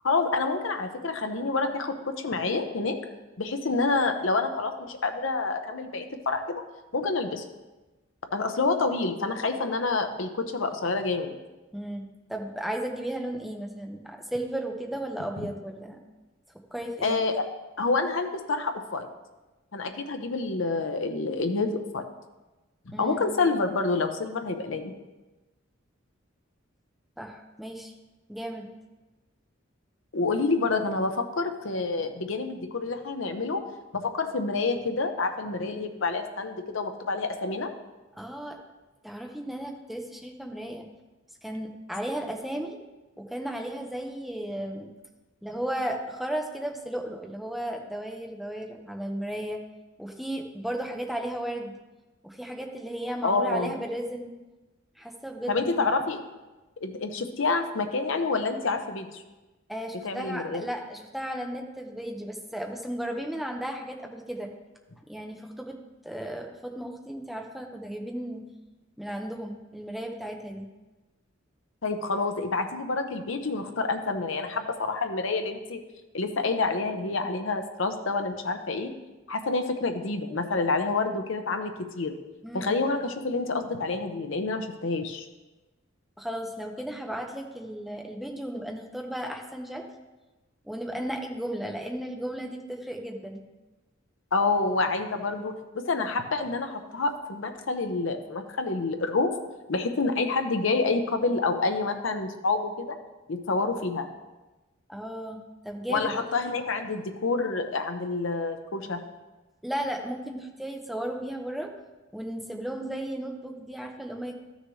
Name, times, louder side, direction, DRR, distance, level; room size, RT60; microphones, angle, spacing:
voice 1, 0.0-3.0 3.4-6.6 6.9-7.4 8.3-11.3 15.4-15.5 17.0-17.4 17.8-19.1 19.7-22.0 23.0-24.9 30.1-33.6 33.9-37.7 53.2-53.7 55.5-56.2 56.8-59.2 60.0-60.6 71.8-75.8 76.1-78.9 79.3-82.1 82.5-85.3 94.3-99.3 99.7-103.0 103.3-104.1 105.9-109.0, left 3 dB, 70° left, 6 dB, 0.8 m, -28 dB
voice 2, 11.7-12.0 12.3-16.0 16.7-17.2 22.9-23.2 27.2-27.9 28.3-28.7 38.2-38.6 39.0-40.9 41.4-42.8 43.2-44.9 45.4-49.6 50.0-51.8 52.2-54.3 55.0-55.9 59.7-64.5 65.1-65.8 66.0-68.4 69.0-70.7 82.4-82.7 86.2-89.8 90.6-93.4 104.9-105.4 105.6-106.1 109.6-111.7 112.1-114.3, right 1 dB, ahead, 2 dB, 0.8 m, -35 dB
13.0 x 6.5 x 3.2 m, 1.1 s
head